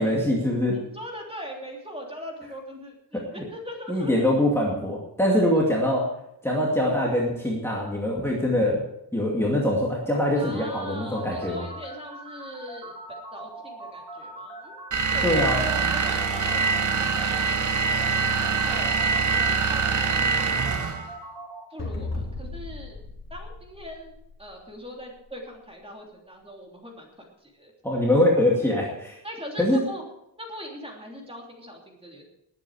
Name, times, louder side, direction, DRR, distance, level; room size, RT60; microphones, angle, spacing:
voice 1, 0.0-0.8 3.1-3.4 3.9-6.1 6.4-8.8 9.1-11.7 15.2-15.6 27.8-29.2 29.6-29.8, left 1 dB, 5° left, -4 dB, 2.4 m, -23 dB
voice 2, 0.7-4.3 5.3-5.4 10.4-13.0 13.3-20.9 21.7-23.0 23.3-27.7 29.2-30.0 30.4-32.2, equal, 15° right, 0 dB, 3.1 m, -40 dB
sound 1, 11.0-21.6, right 2 dB, 85° right, 5.9 m, -41 dB
sound 2, 14.9-21.1, right 5 dB, 40° right, 1.2 m, -24 dB
sound 3, 21.8-24.5, left 3 dB, 35° left, 2.9 m, -35 dB
20.0 x 8.9 x 4.9 m, 0.80 s
wide cardioid pair, 160°, 45 cm